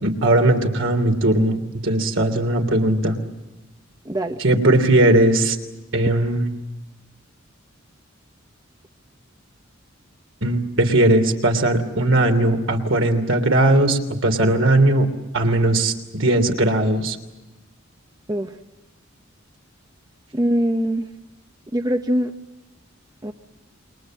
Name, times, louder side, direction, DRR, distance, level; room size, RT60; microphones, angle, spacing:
voice 1, 0.0-3.2 4.4-5.6 5.9-6.4 10.4-15.1 15.3-17.2, right 1 dB, 65° right, 6 dB, 3.1 m, -18 dB
voice 2, 4.0-4.4 18.3-18.6 20.3-21.1 21.7-22.3 23.2-23.3, equal, 20° right, 6 dB, 0.9 m, -22 dB
28.5 x 23.0 x 7.6 m, 1.0 s
head